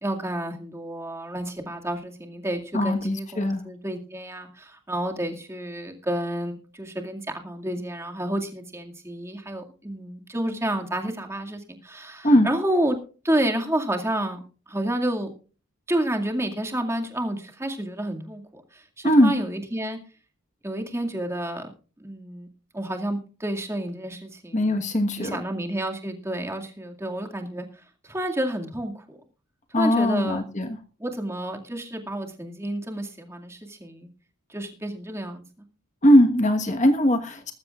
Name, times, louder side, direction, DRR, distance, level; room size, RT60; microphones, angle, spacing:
voice 1, 0.0-13.0 13.2-15.3 15.9-20.0 20.6-21.7 22.0-22.5 22.7-24.8 25.2-27.7 28.0-29.2 29.8-30.4 31.0-34.1 34.5-35.4, right 1 dB, 10° right, 3 dB, 2.2 m, -30 dB
voice 2, 2.7-3.6 12.2-12.5 19.0-19.3 24.5-25.4 29.7-30.8 36.0-37.5, equal, 35° left, 6 dB, 1.3 m, -20 dB
19.5 x 14.5 x 2.4 m, 0.37 s
head